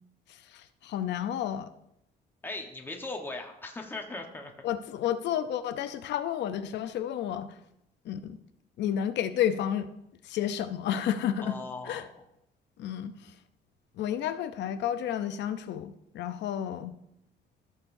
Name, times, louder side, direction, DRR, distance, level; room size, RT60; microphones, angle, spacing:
voice 1, 0.3-1.7 4.6-7.6 8.0-8.4 8.8-9.9 10.2-11.6 11.9-12.0 12.8-13.4 13.9-17.0, left 10 dB, 80° left, 0.7 m, -31 dB
voice 2, 2.4-4.5 11.4-12.1, left 2 dB, 10° left, 1.2 m, -38 dB
14.5 x 6.7 x 2.7 m
cardioid pair, 120°, 18 cm